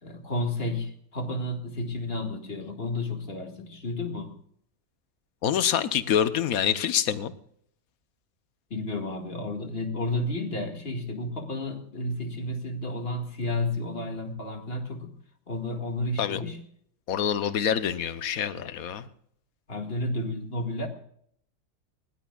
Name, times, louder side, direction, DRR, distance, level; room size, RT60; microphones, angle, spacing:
voice 1, 0.0-4.3 8.7-15.1 15.5-16.6 19.7-20.9, left 2 dB, 45° left, 4 dB, 2.2 m, -31 dB
voice 2, 5.4-7.3 16.2-16.4 17.1-19.1, left 9 dB, 80° left, 13 dB, 1.3 m, -26 dB
20.5 x 18.5 x 2.3 m, 0.67 s
omnidirectional pair, 1.5 m